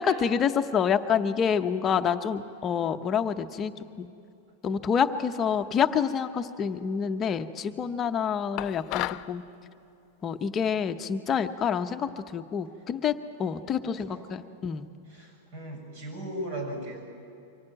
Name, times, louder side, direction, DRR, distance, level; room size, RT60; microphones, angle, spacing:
voice 1, 0.0-3.7 4.0-4.1 4.6-9.4 10.2-14.9, left 7 dB, 20° left, 7 dB, 0.8 m, -27 dB
sound 1, 8.6-9.3, left 16 dB, 35° left, 0.5 m, -32 dB
voice 2, 13.7-14.6 15.1-17.0, right 1 dB, 60° right, 3 dB, 7.1 m, -38 dB
24.5 x 16.5 x 9.0 m, 2.5 s
supercardioid pair, 155°, 0 cm